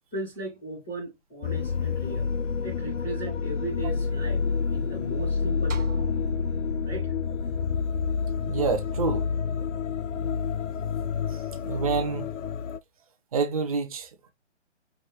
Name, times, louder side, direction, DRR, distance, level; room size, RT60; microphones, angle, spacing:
voice 1, 0.1-2.3 2.6-4.4 4.7-5.9 6.8-7.1, right 2 dB, 5° left, 0.5 m, -37 dB
sound 1, 1.4-12.8, left 5 dB, 80° left, 0.6 m, -28 dB
sound 2, 5.7-10.1, right 2 dB, 85° right, 1.0 m, -41 dB
voice 2, 8.5-9.3 11.3-12.3 13.3-14.3, right 5 dB, 30° right, 0.8 m, -28 dB
5.1 x 2.1 x 3.1 m
figure-of-eight pair, 150°, 37 cm